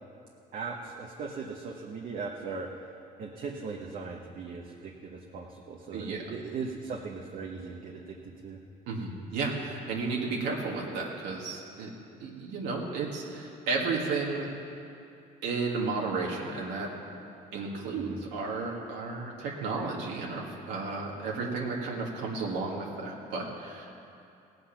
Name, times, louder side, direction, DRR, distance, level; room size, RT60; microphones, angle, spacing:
voice 1, 0.5-2.7 3.2-8.6 17.9-18.2, right 4 dB, 55° right, -1 dB, 1.1 m, -39 dB
voice 2, 5.9-6.2 8.9-11.9 12.2-14.5 15.4-16.9 17.5-24.0, right 3 dB, 90° right, -3 dB, 2.0 m, -33 dB
17.5 x 8.0 x 5.9 m, 2.7 s
cardioid pair, 110°, 17 cm